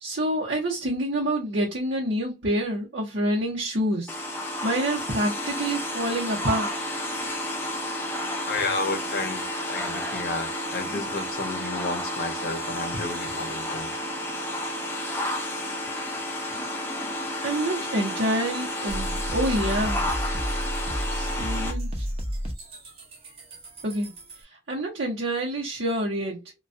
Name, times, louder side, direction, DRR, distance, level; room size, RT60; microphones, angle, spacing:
voice 1, 0.0-4.1 4.6-6.7 17.4-20.1 21.1-21.9 23.8-24.1 24.7-26.5, right 1 dB, 70° right, 0.8 m, -27 dB
sound 1, 4.1-21.7, left 1 dB, 10° left, 0.5 m, -31 dB
voice 2, 8.4-14.0, left 3 dB, 55° left, 0.6 m, -32 dB
sound 2, 18.9-24.4, equal, 35° right, 0.6 m, -32 dB
2.2 x 2.2 x 2.5 m
head